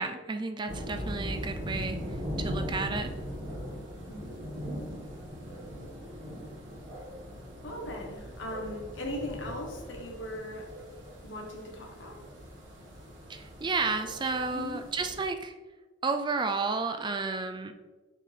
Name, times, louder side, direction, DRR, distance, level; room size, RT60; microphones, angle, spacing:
voice 1, 0.0-3.1 13.3-15.5 16.0-17.7, right 4 dB, 25° right, 7 dB, 0.4 m, -32 dB
sound 1, 0.7-15.2, equal, 70° right, 1.5 m, -40 dB
voice 2, 4.7-5.0 7.6-10.7 11.2-12.2 14.5-14.8, left 1 dB, 75° left, 0 dB, 1.0 m, -39 dB
7.2 x 4.6 x 3.3 m, 1.3 s
head